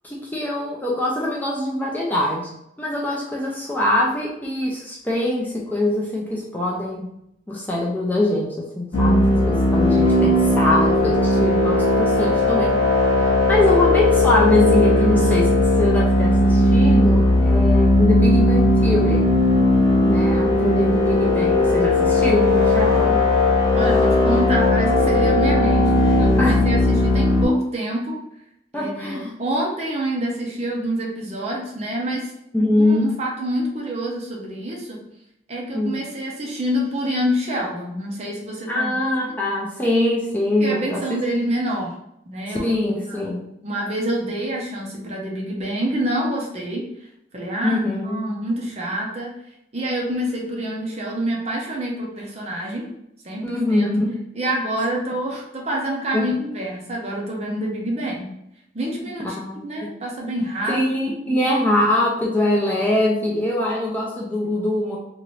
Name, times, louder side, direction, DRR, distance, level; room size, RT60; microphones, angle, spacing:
voice 1, 0.0-2.5 2.8-7.1 7.5-12.7 13.2-19.3 20.0-23.2 26.4-26.6 28.7-29.4 32.5-33.2 35.7-35.9 38.7-41.2 42.5-43.5 47.6-48.2 53.4-54.2 56.1-56.3 59.0-59.1 59.4-60.0 60.7-65.0, left 1 dB, 10° left, -4 dB, 0.4 m, -23 dB
sound 1, 8.9-27.5, left 1 dB, 70° left, 1.4 m, -17 dB
voice 2, 23.7-28.2 28.7-32.3 32.8-35.0 35.5-38.9 40.6-42.0 42.3-42.7 43.1-43.3 43.6-46.8 47.3-47.8 48.0-49.3 49.7-52.8 53.2-53.4 53.7-53.9 54.3-58.3 58.7-59.4 59.6-60.8 61.3-61.4, right 1 dB, 35° right, -1 dB, 0.6 m, -27 dB
2.9 x 2.5 x 3.1 m, 0.79 s
head